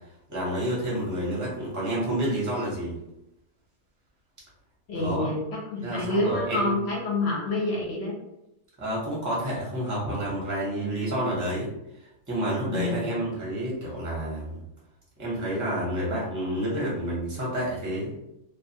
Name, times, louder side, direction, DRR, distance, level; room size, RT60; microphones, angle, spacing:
voice 1, 0.3-3.0 4.9-5.3 5.8-6.8 8.8-11.7 12.3-14.6 15.2-18.1, right 1 dB, 15° right, -6 dB, 0.7 m, -29 dB
voice 2, 4.9-8.2 12.7-13.1, left 2 dB, 55° left, -3 dB, 0.9 m, -28 dB
2.4 x 2.4 x 2.7 m, 0.86 s
omnidirectional pair, 1.6 m